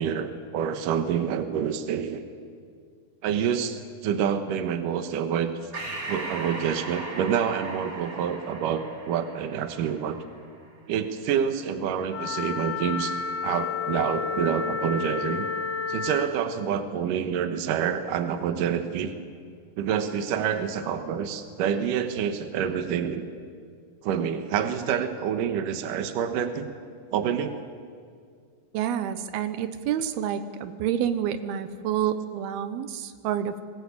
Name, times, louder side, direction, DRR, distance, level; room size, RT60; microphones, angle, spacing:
voice 1, 0.0-2.2 3.2-5.5 6.1-10.2 10.9-13.1 13.4-15.5 15.9-19.1 19.8-23.2 24.0-26.7 27.1-27.6, right 8 dB, 70° right, 8 dB, 2.7 m, -27 dB
Breathing, 5.7-10.6, right 2 dB, 30° right, 5.2 m, -38 dB
Wind instrument woodwind instrument, 12.1-16.4, left 5 dB, 75° left, 3.2 m, -30 dB
voice 2, 28.7-33.6, right 9 dB, 85° right, 10 dB, 2.9 m, -28 dB
25.0 x 20.0 x 8.5 m, 2.2 s
omnidirectional pair, 4.3 m